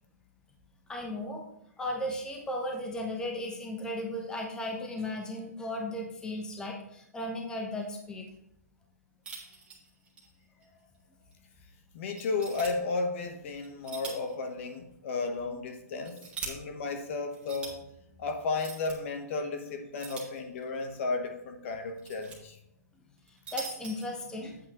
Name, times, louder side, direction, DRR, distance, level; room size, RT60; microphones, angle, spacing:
voice 1, 0.9-1.5 1.8-8.3 23.5-24.6, left 1 dB, 10° left, 1 dB, 1.0 m, -35 dB
sound 1, 9.2-10.3 10.6-10.7 11.3-11.4 12.2-12.7 13.6-14.3 14.7-14.8 15.7-16.5 17.3-17.7 18.5-19.0 20.0-20.8 21.7-22.4 23.2-24.1, right 5 dB, 15° right, 1.6 m, -42 dB
voice 2, 11.9-17.8 18.2-22.6, left 3 dB, 50° left, 5 dB, 1.1 m, -33 dB
8.4 x 8.2 x 3.0 m, 0.80 s
hypercardioid pair, 145°, 9 cm